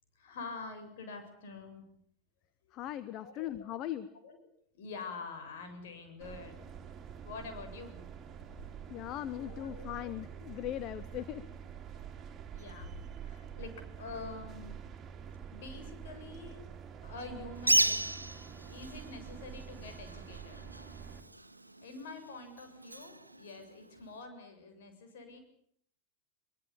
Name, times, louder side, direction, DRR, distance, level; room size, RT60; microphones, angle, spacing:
voice 1, 0.2-1.9 3.2-3.9 4.2-4.4 4.7-6.8 7.2-8.0 9.4-10.1 12.5-14.8 15.5-16.6 17.0-18.4 18.7-20.6 21.8-25.4, left 4 dB, 55° left, 7 dB, 7.3 m, -46 dB
voice 2, 2.7-4.1 8.9-11.5, left 12 dB, 35° left, 13 dB, 1.2 m, -39 dB
sound 1, 6.2-21.2, right 7 dB, 25° right, 3.5 m, -47 dB
Bird, 17.6-24.2, right 2 dB, 85° right, 1.4 m, -35 dB
23.5 x 23.0 x 8.9 m, 0.68 s
figure-of-eight pair, 90°, 0 cm